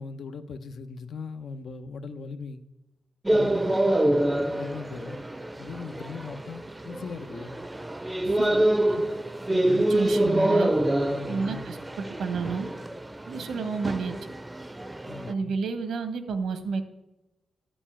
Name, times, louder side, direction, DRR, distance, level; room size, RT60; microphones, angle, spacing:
voice 1, 0.0-2.6 3.3-3.9 4.5-5.2 5.6-7.6 9.6-9.9 11.1-11.8 15.1-15.5, left 4 dB, 75° left, 0.9 m, -39 dB
sound 1, 3.3-15.3, right 1 dB, 15° right, 0.5 m, -26 dB
voice 2, 9.5-10.7 11.3-12.7 13.3-14.1 15.3-16.8, right 5 dB, 90° right, 1.2 m, -31 dB
12.5 x 5.4 x 8.6 m
cardioid pair, 100°, 0 cm